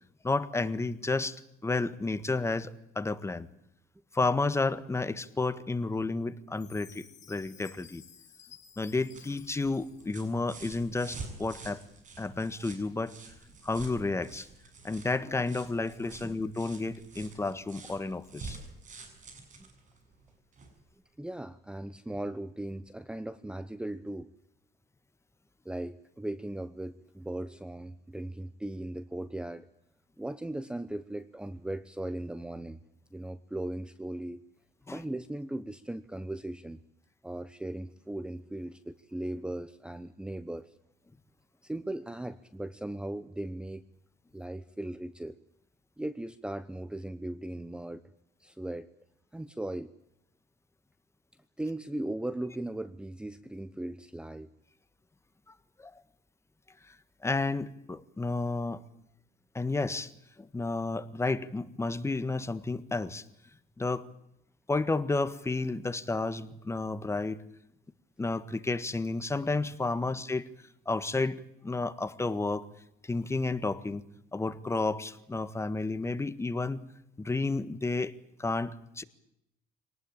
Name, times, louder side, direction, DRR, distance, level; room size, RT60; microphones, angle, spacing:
voice 1, 0.2-3.5 4.1-8.0 8.8-11.8 12.2-13.1 13.6-14.5 14.8-18.6 34.9-35.0 55.8-55.9 57.2-58.8 59.5-60.1 60.4-63.2 63.8-64.0 64.7-67.4 68.2-70.5 70.8-72.7 73.0-74.0 74.3-76.8 77.2-78.1 78.4-79.0, left 3 dB, 15° left, 13 dB, 1.6 m, -31 dB
Chime, 6.6-10.6, left 8 dB, 45° left, 5.3 m, -55 dB
sound 1, 8.8-20.8 22.1-22.2, right 4 dB, 50° right, 7.3 m, -48 dB
voice 2, 21.2-24.3 25.6-29.7 30.2-32.8 33.1-34.4 34.9-36.8 37.2-40.7 41.6-43.8 44.3-45.3 46.0-48.0 48.4-48.9 49.3-49.9 51.6-54.5, right 1 dB, 5° right, 15 dB, 1.0 m, -38 dB
25.0 x 19.0 x 8.9 m, 0.82 s
cardioid pair, 110°, 17 cm